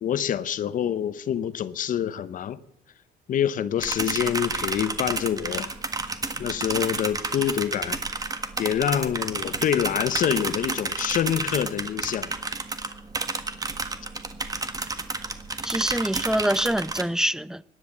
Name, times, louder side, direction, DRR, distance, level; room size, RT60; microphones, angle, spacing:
voice 1, 0.0-2.6 3.3-5.7 6.4-8.0 8.6-12.3, left 9 dB, 50° left, 0.9 m, -26 dB
sound 1, 3.8-17.0, right 3 dB, 20° right, 1.5 m, -31 dB
voice 2, 15.6-17.6, right 1 dB, 5° right, 0.6 m, -25 dB
17.0 x 11.0 x 7.4 m
cardioid pair, 110°, 17 cm